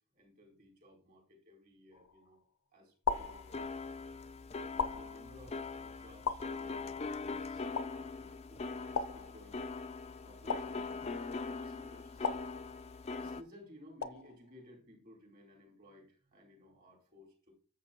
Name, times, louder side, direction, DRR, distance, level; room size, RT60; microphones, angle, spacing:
voice 1, 0.1-2.4 2.7-3.6 4.5-9.7 10.2-12.3 13.2-17.5, equal, 40° right, -2 dB, 4.4 m, -58 dB
sound 1, 1.9-2.4 3.0-4.0 4.8-5.6 6.2-7.1 7.7-8.4 8.9-9.9 10.5-11.4 12.2-13.2 14.0-14.6, left 5 dB, 80° left, 0.8 m, -39 dB
sound 2, 3.1-13.4, left 4 dB, 30° left, 0.5 m, -42 dB
11.5 x 7.8 x 2.9 m, 0.40 s
head